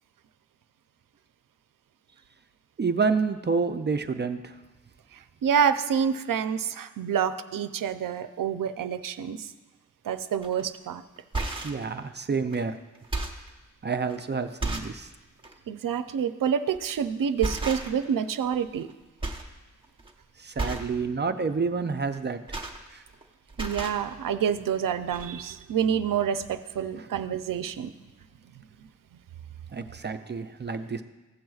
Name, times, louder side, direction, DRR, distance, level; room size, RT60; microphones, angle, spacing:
voice 1, 2.8-4.5 11.6-12.8 13.8-15.1 20.4-22.4 22.9-23.0 27.0-27.1 29.7-31.0, right 4 dB, 35° right, 8 dB, 0.4 m, -28 dB
voice 2, 5.4-9.5 10.0-11.0 15.7-18.9 23.6-27.9, right 8 dB, 85° right, 11 dB, 0.5 m, -27 dB
sound 1, 10.4-10.6 11.2-11.8 12.5-12.6 12.9-13.5 14.1-14.2 14.6-15.0 15.4-15.6 16.7-17.0 17.4-18.1 18.4-18.9 19.2-19.5 19.8-20.1 20.5-20.9 22.1-23.2 23.5-24.0 24.8-24.9 25.1-25.3, right 2 dB, 15° right, 0.9 m, -33 dB
15.5 x 7.5 x 2.4 m, 1.1 s
wide cardioid pair, 130°, 32 cm